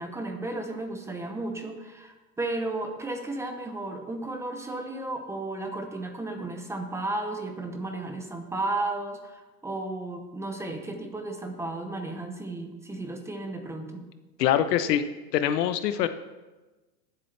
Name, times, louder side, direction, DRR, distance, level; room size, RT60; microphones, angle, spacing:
voice 1, 0.0-14.0, right 2 dB, 5° right, 5 dB, 0.6 m, -34 dB
voice 2, 14.4-15.1 15.3-16.1, left 10 dB, 75° left, 11 dB, 0.9 m, -24 dB
19.5 x 7.7 x 3.3 m, 1.2 s
supercardioid pair, 145°, 48 cm